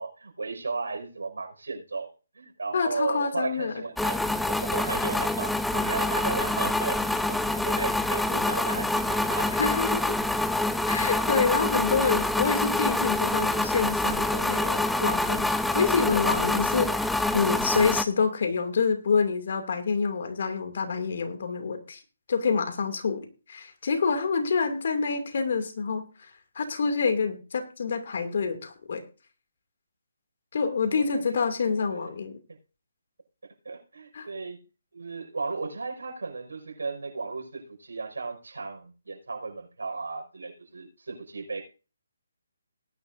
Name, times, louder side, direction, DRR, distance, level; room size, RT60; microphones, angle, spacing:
voice 1, 0.0-4.2 4.5-9.5 30.6-31.2 31.6-32.1 32.5-32.6 33.7-34.6 34.9-41.6, right 4 dB, 80° right, 3 dB, 5.3 m, -35 dB
voice 2, 2.7-3.8 9.5-10.2 10.9-22.0 22.3-26.0 26.5-29.0 30.5-32.4 34.1-34.3, left 5 dB, 55° left, 6 dB, 2.5 m, -27 dB
sound 1, 4.0-18.0, left 2 dB, ahead, 0.6 m, -26 dB
19.0 x 10.5 x 2.6 m, 0.34 s
hypercardioid pair, 150°, 0 cm